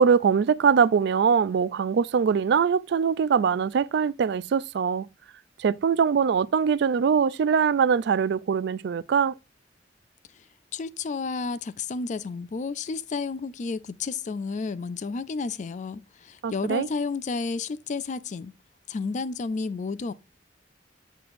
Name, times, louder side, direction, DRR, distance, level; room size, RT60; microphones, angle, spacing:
voice 1, 0.0-5.1 5.6-9.3 16.4-16.9, right 6 dB, 65° right, 0.4 m, -22 dB
voice 2, 10.7-18.5 18.9-20.1, left 4 dB, 40° left, 0.4 m, -31 dB
7.4 x 6.8 x 2.6 m
head